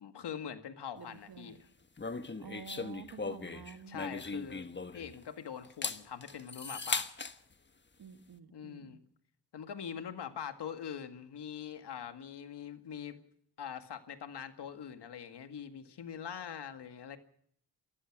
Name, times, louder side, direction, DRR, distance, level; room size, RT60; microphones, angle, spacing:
voice 1, 0.0-1.6 3.9-7.1 8.5-9.0 9.5-13.2 13.6-17.2, left 8 dB, 80° left, 8 dB, 2.0 m, -43 dB
voice 2, 0.9-1.6 2.4-4.1 8.0-9.0, right 8 dB, 65° right, 9 dB, 1.6 m, -50 dB
sound 1, 2.0-5.2 5.6-7.4, left 4 dB, 25° left, 1.3 m, -38 dB
28.0 x 15.5 x 6.1 m, 0.66 s
cardioid pair, 80°, 40 cm